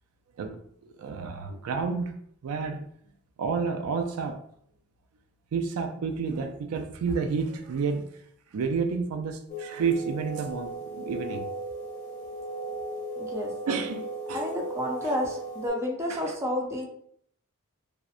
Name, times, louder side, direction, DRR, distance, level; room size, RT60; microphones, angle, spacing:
voice 1, 1.0-2.9 3.4-4.4 5.5-8.1 8.5-11.5 13.7-14.4 15.0-15.2 16.1-16.3, right 5 dB, 90° right, 0.3 m, -30 dB
sound 1, 9.5-15.7, right 1 dB, 35° left, 1.1 m, -36 dB
voice 2, 13.2-13.5 14.3-16.9, left 1 dB, 15° right, 0.4 m, -30 dB
2.6 x 2.0 x 2.4 m
head